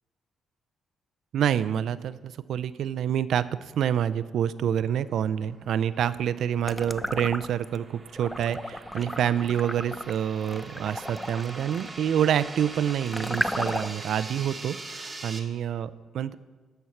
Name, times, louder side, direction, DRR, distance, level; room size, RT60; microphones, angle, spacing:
voice 1, 1.3-16.3, right 9 dB, 70° right, 15 dB, 0.4 m, -27 dB
sound 1, 5.1-15.4, right 3 dB, 25° right, 1.2 m, -43 dB
sound 2, 6.6-7.8 8.2-14.1, left 1 dB, 10° left, 0.4 m, -34 dB
11.0 x 4.5 x 7.0 m, 1.4 s
cardioid pair, 90°, 0 cm